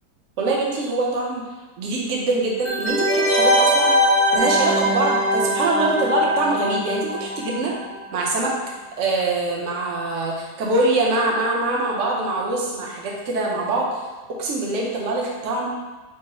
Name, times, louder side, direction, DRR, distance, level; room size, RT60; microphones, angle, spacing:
voice 1, 0.4-1.4 1.8-3.9 4.3-7.7 8.1-8.5 9.0-14.1 14.4-15.7, right 2 dB, 60° right, -3 dB, 0.9 m, -24 dB
sound 1, 2.6-8.1 8.4-8.5, equal, 10° left, 0.6 m, -21 dB
3.8 x 2.0 x 4.0 m, 1.2 s
omnidirectional pair, 1.8 m